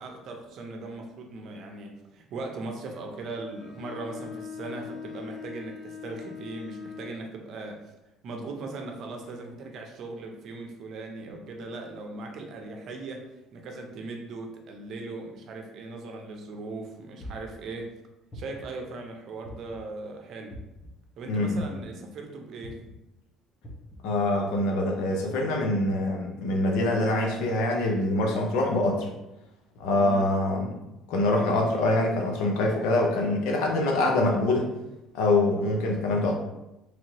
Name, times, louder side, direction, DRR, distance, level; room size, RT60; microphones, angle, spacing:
voice 1, 0.0-7.9 8.2-18.0 18.3-20.6 21.2-22.8 29.9-30.3, right 3 dB, 60° right, 2 dB, 0.6 m, -39 dB
Bowed string instrument, 3.3-7.3, left 7 dB, 40° left, 0.4 m, -42 dB
sound 1, 17.2-17.6 18.3-18.8 19.4-19.9 20.5-20.9 21.6-22.0 22.6-22.9 23.6-24.0, equal, 20° left, 0.9 m, -43 dB
voice 2, 21.3-21.7 24.0-29.1 29.8-30.8 31.1-34.7 35.1-36.4, left 2 dB, 80° left, 1 dB, 0.7 m, -24 dB
3.3 x 2.8 x 2.8 m, 0.93 s
supercardioid pair, 95°, 0 cm